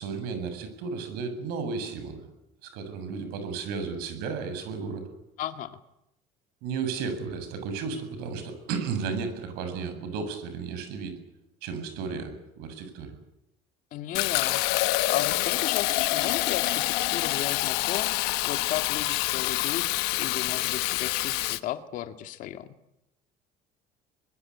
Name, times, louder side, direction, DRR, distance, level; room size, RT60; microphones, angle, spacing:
voice 1, 0.0-2.2 2.6-5.1 6.6-11.1 11.6-13.1, right 5 dB, 75° right, 9 dB, 7.6 m, -33 dB
voice 2, 5.4-5.8 13.9-22.7, left 12 dB, 55° left, 8 dB, 1.9 m, -35 dB
Fill (with liquid), 14.1-21.6, left 19 dB, 80° left, 1.3 m, -27 dB
24.0 x 22.5 x 9.9 m, 0.87 s
cardioid pair, 150°, 16 cm